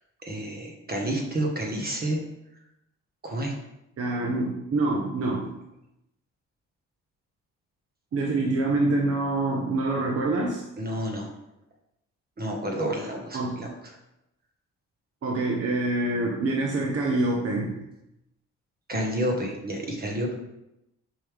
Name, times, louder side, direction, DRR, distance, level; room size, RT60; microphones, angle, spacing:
voice 1, 0.2-2.2 3.2-3.5 10.8-11.3 12.4-13.7 18.9-20.3, right 1 dB, 30° right, 0 dB, 1.6 m, -29 dB
voice 2, 4.0-5.5 8.1-10.6 13.3-13.7 15.2-17.7, right 2 dB, 50° right, -1 dB, 1.2 m, -26 dB
6.9 x 5.5 x 3.6 m, 0.87 s
cardioid pair, 90°, 30 cm